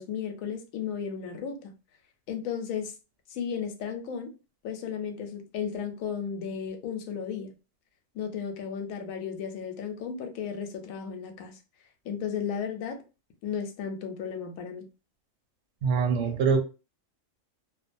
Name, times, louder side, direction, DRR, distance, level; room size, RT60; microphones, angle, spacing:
voice 1, 0.0-1.7 2.3-2.9 3.3-4.3 4.6-7.5 8.1-11.6 12.0-13.0 13.4-14.9, left 7 dB, 85° left, 1.0 m, -34 dB
voice 2, 15.8-16.6, right 5 dB, 65° right, 0.8 m, -24 dB
2.4 x 2.2 x 2.5 m
omnidirectional pair, 1.4 m